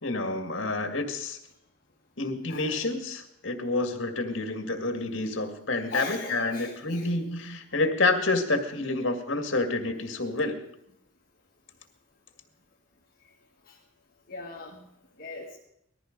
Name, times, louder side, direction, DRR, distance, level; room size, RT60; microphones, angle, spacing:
voice 1, 0.0-1.4 2.2-10.6, left 2 dB, 65° left, 6 dB, 2.0 m, -28 dB
voice 2, 5.9-7.3 13.7-13.8 14.3-14.9 15.2-15.6, left 4 dB, 45° left, -2 dB, 1.6 m, -39 dB
19.5 x 14.0 x 5.2 m, 0.81 s
head